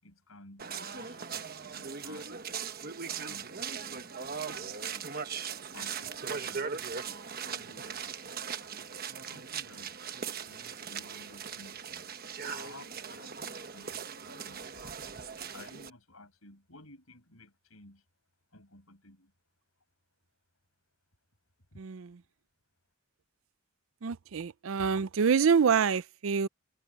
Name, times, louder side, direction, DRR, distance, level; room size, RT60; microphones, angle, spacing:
voice 1, 0.0-2.4 3.1-5.2 5.7-8.0 8.7-12.0 12.5-15.1 15.5-18.0 18.5-19.3 21.7-21.8, left 2 dB, 75° left, 7.8 m, -54 dB
sound 1, 0.6-15.9, right 6 dB, 45° right, 1.2 m, -39 dB
sound 2, 5.8-8.2 8.6-8.7, left 4 dB, 25° left, 6.8 m, -65 dB
voice 2, 21.8-22.1 24.0-26.5, right 6 dB, 70° right, 0.5 m, -26 dB
head